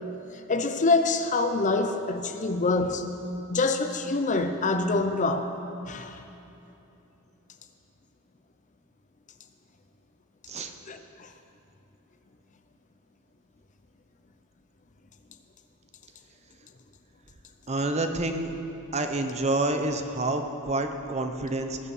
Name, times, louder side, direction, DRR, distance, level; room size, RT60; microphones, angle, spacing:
voice 1, 0.5-3.1 3.5-5.5 5.9-6.2 10.9-11.3, left 3 dB, 35° left, 7 dB, 0.6 m, -25 dB
voice 2, 17.7-18.5 18.9-21.8, right 2 dB, 30° right, 6 dB, 0.8 m, -28 dB
19.0 x 8.6 x 5.5 m, 2.9 s
head